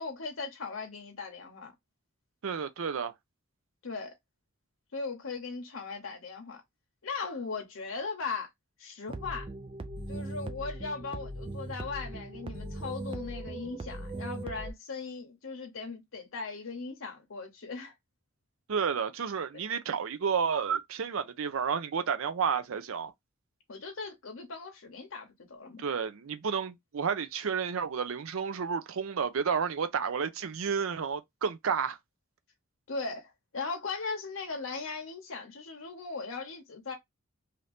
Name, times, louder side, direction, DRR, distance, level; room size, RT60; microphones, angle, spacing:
voice 1, 0.0-1.7 3.8-4.2 4.9-6.6 7.0-8.5 8.8-9.5 10.1-17.9 19.5-19.6 23.7-25.8 32.9-36.9, left 4 dB, 75° left, 0.8 m, -38 dB
voice 2, 2.4-3.1 18.7-23.1 25.8-32.0, right 6 dB, 80° right, 0.5 m, -31 dB
sound 1, 9.1-14.7, right 2 dB, 25° right, 0.4 m, -39 dB
2.8 x 2.5 x 3.3 m
head